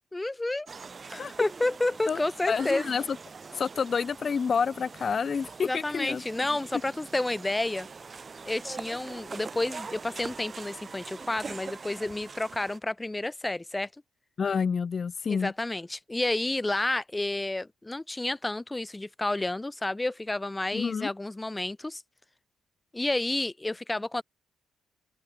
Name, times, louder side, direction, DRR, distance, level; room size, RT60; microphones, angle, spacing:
voice 1, 0.1-0.7 1.1-2.9 5.6-7.9 8.4-13.9 15.3-22.0 22.9-24.2, left 2 dB, 10° left, 1.3 m, -30 dB
sound 1, 0.7-12.8, right 5 dB, 30° right, 0.9 m, -43 dB
voice 2, 2.5-3.0 3.5-6.2 14.4-15.5 20.7-21.1, left 6 dB, 35° left, 0.4 m, -28 dB
open air
cardioid pair, 130°, 0 cm